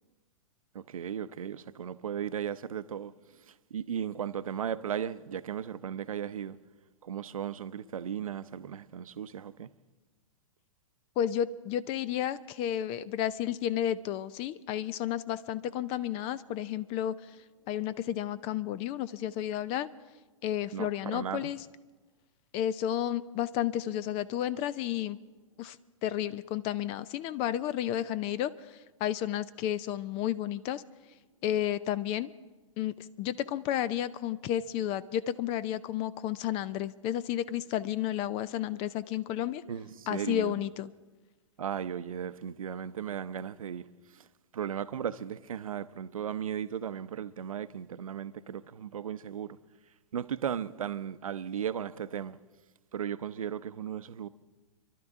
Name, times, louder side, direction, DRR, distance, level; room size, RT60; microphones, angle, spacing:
voice 1, 0.7-3.1 3.5-6.6 7.0-9.7 20.7-21.5 39.7-40.6 41.6-43.9 44.1-44.3 44.5-49.6 50.1-52.4 52.9-54.3, right 8 dB, 85° right, 0.7 m, -36 dB
voice 2, 11.2-17.1 17.7-19.9 20.4-21.6 22.5-25.2 25.6-25.8 26.0-28.5 29.0-30.8 31.4-32.3 32.8-39.6 40.1-40.9, left 11 dB, 35° left, 0.5 m, -32 dB
27.0 x 12.0 x 3.6 m
hypercardioid pair, 125°, 17 cm